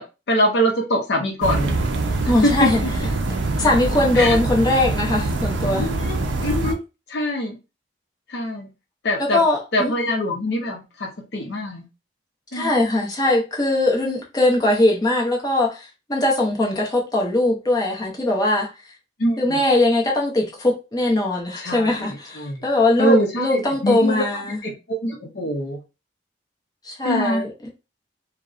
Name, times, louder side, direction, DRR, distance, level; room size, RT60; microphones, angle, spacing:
voice 1, 0.0-1.8 2.4-2.7 4.1-4.4 5.8-6.8 7.1-7.6 8.3-8.7 9.0-9.5 9.7-11.9 12.5-12.7 19.2-19.6 21.6-22.6 23.0-25.8 27.0-27.4, equal, 60° left, 0.6 m, -24 dB
sound 1, 1.4-6.7, right 2 dB, 75° right, 0.4 m, -24 dB
voice 2, 2.3-2.8 3.6-5.9 9.3-9.9 12.5-18.7 19.4-24.6 26.8-27.7, left 2 dB, 20° left, 0.6 m, -20 dB
2.6 x 2.0 x 2.3 m
head